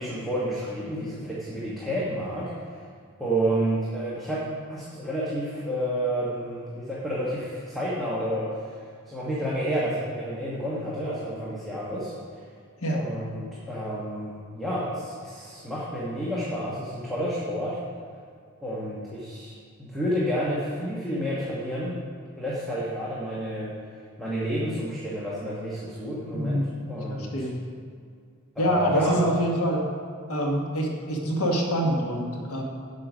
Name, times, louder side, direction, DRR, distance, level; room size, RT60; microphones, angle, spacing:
voice 1, 0.0-2.8 3.2-4.4 4.7-8.7 9.1-12.4 12.9-17.8 18.6-19.5 19.8-21.9 22.4-23.7 24.2-26.6 26.9-27.5 28.5-29.2, right 1 dB, ahead, -8 dB, 1.4 m, -30 dB
voice 2, 26.3-27.5 28.6-29.9 30.3-32.6, equal, 70° left, -1 dB, 1.6 m, -26 dB
8.8 x 7.6 x 5.1 m, 2.2 s
head